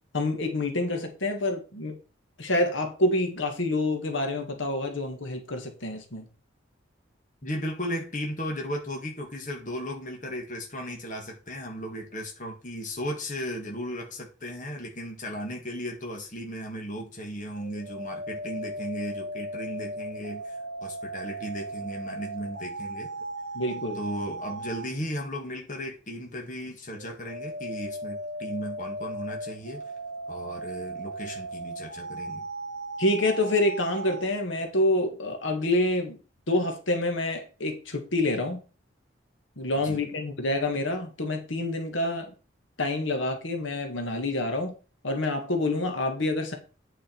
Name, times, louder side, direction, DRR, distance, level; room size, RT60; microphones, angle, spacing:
voice 1, 0.1-2.0 2.4-6.3 23.5-24.0 33.0-36.2 36.5-38.6 39.6-42.3 42.8-44.7 45.0-46.6, left 1 dB, 80° left, 4 dB, 1.7 m, -27 dB
voice 2, 7.4-23.1 24.0-29.8 30.3-32.5 39.8-40.0, equal, 40° left, 1 dB, 1.7 m, -36 dB
sound 1, 17.6-24.9 26.9-34.2, right 1 dB, 55° right, 1.1 m, -37 dB
8.9 x 5.0 x 4.5 m, 0.35 s
head